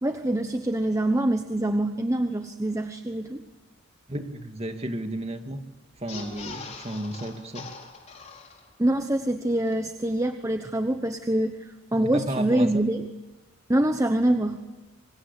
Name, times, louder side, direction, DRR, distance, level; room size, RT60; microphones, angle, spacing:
voice 1, 0.0-3.4 8.8-13.1 13.7-14.6, right 1 dB, 15° right, 7 dB, 1.1 m, -25 dB
voice 2, 4.1-5.6 6.0-7.7 12.1-12.7, right 1 dB, 30° right, 6 dB, 2.2 m, -33 dB
sound 1, 5.9-8.9 9.3-9.4 9.6-9.7, left 4 dB, 35° left, 4.4 m, -42 dB
27.5 x 24.0 x 8.4 m, 1.1 s
head